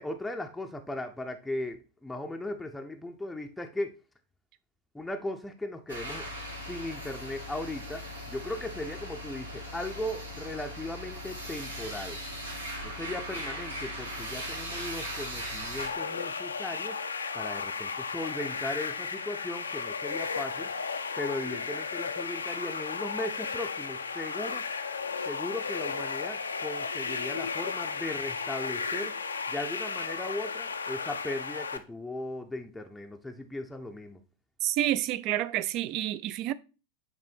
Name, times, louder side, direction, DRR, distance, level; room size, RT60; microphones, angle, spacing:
voice 1, 0.0-4.0 4.9-6.3 6.7-12.2 12.8-17.0 17.3-20.7 21.2-24.6 25.3-29.1 29.5-34.2, left 1 dB, 5° left, 0.6 m, -37 dB
sound 1, 5.9-15.9, equal, 75° right, 1.3 m, -39 dB
sound 2, 15.8-31.8, left 5 dB, 75° left, 0.5 m, -34 dB
voice 2, 34.6-36.5, right 13 dB, 40° right, 0.4 m, -29 dB
7.9 x 3.4 x 4.2 m
figure-of-eight pair, 90°, 0 cm